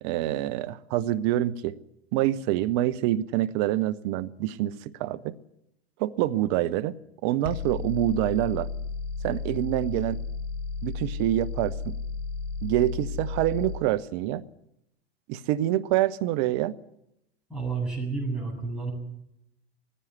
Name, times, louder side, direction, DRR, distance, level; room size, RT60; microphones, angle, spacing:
voice 1, 0.0-1.8 2.1-4.7 5.0-5.3 6.0-7.0 7.2-8.7 9.2-10.2 10.8-11.9 12.6-14.4 15.3-16.7, right 13 dB, 40° right, 12 dB, 0.9 m, -26 dB
sound 1, 7.4-13.8, left 4 dB, 55° left, 2.3 m, -33 dB
voice 2, 17.5-18.9, right 4 dB, ahead, -2 dB, 8.0 m, -30 dB
18.0 x 15.5 x 9.9 m, 0.81 s
figure-of-eight pair, 95°, 32 cm